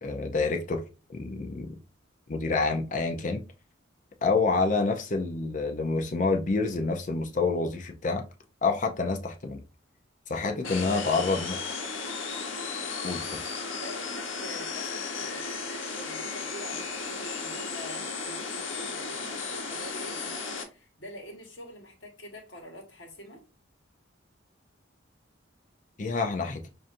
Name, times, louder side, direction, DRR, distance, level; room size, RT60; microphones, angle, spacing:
voice 1, 0.0-0.8 1.1-1.8 2.3-3.4 4.2-8.2 8.6-9.6 10.3-11.6 13.0-13.4 26.0-26.7, left 3 dB, 40° left, 0.5 m, -28 dB
sound 1, 10.6-20.6, left 4 dB, 85° left, 1.0 m, -35 dB
voice 2, 10.6-11.3 13.7-15.5 15.9-23.4, equal, 65° left, 1.3 m, -45 dB
5.6 x 2.5 x 2.5 m
head